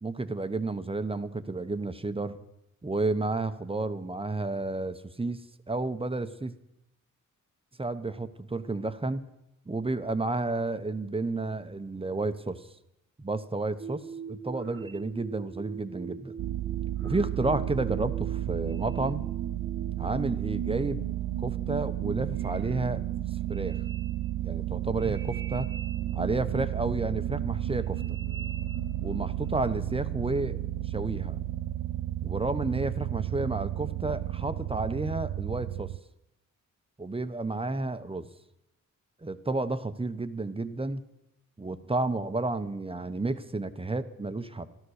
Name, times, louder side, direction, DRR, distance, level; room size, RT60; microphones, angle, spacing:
voice 1, 0.0-2.4 2.8-5.4 5.7-6.5 7.8-9.2 9.7-12.6 13.2-14.0 14.3-16.3 17.0-19.3 20.0-21.1 21.4-23.0 23.5-23.8 24.4-25.7 26.1-28.0 29.0-30.6 30.9-31.4 32.2-35.9 37.0-38.3 39.2-41.0 41.6-44.7, right 2 dB, 15° right, 10 dB, 1.0 m, -31 dB
sound 1, 13.8-29.5, right 5 dB, 40° right, 0.8 m, -42 dB
sound 2, 16.4-36.0, right 14 dB, 85° right, 0.5 m, -32 dB
13.0 x 12.5 x 6.5 m, 0.87 s
cardioid pair, 80°, 32 cm